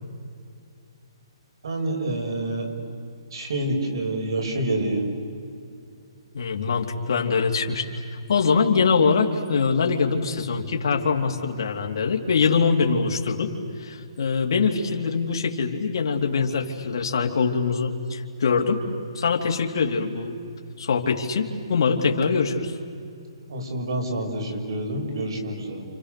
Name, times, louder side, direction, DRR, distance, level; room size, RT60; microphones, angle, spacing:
voice 1, 1.6-2.7 3.3-5.0 23.5-25.9, right 1 dB, 65° right, 2 dB, 6.4 m, -27 dB
voice 2, 6.3-7.9 8.3-13.5 13.8-18.8 19.1-20.4 20.8-22.7, left 5 dB, 55° left, 1 dB, 3.0 m, -23 dB
30.0 x 29.0 x 6.7 m, 2.5 s
hypercardioid pair, 170°, 3 cm